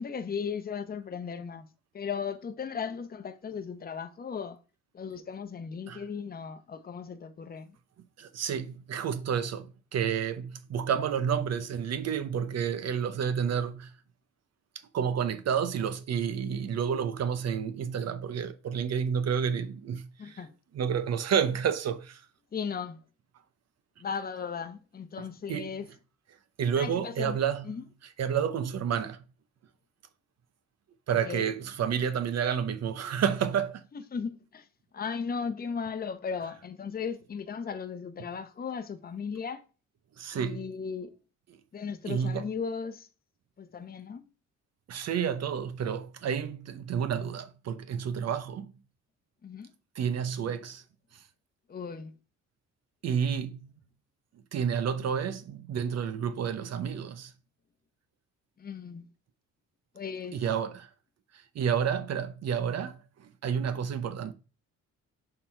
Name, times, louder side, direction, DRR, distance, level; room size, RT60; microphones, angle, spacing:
voice 1, 0.0-1.7 1.9-4.6 4.9-7.8 20.2-20.5 22.5-23.0 24.0-25.9 26.8-27.4 27.6-27.8 31.1-31.5 33.9-34.7 34.9-39.6 40.3-41.1 41.7-43.1 43.6-44.2 49.4-49.7 51.7-52.1 58.6-59.1 59.9-60.4, left 6 dB, 30° left, 0.8 m, -36 dB
voice 2, 8.2-13.9 14.9-20.4 20.7-22.2 25.5-25.7 26.6-27.7 28.2-29.2 31.1-33.8 40.2-40.6 42.1-42.4 44.9-48.7 50.0-50.8 53.0-53.7 54.5-57.3 60.3-60.9 61.5-63.0 63.4-64.3, right 7 dB, 60° right, 0.8 m, -30 dB
6.7 x 3.9 x 4.4 m
cardioid pair, 90°, 30 cm